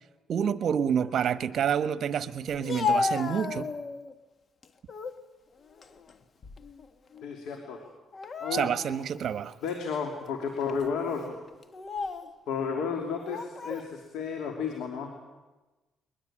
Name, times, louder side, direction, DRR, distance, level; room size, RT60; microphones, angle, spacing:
voice 1, 0.3-3.7 8.5-9.6, right 8 dB, 65° right, 12 dB, 1.2 m, -28 dB
Speech, 2.5-4.1 4.6-5.2 5.6-6.9 7.1-7.3 8.1-9.1 9.7-9.8 10.6-10.8 11.6-12.3 13.2-13.9, left 4 dB, 45° left, 1.6 m, -33 dB
voice 2, 7.2-7.8 8.4-8.7 9.6-11.4 12.5-15.1, left 6 dB, 85° left, 3 dB, 2.9 m, -32 dB
21.5 x 21.5 x 8.9 m, 1.2 s
cardioid pair, 90°, 0 cm